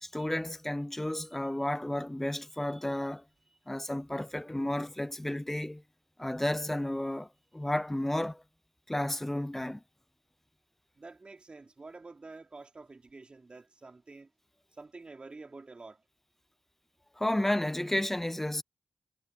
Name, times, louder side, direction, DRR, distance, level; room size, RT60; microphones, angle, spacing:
voice 1, 0.0-3.2 3.7-5.8 6.2-8.4 8.9-9.8 17.2-18.6, left 1 dB, 10° left, 0.5 m, -32 dB
voice 2, 11.0-14.3 14.8-16.0, right 3 dB, 35° right, 4.1 m, -48 dB
wide cardioid pair, 85°, 3 cm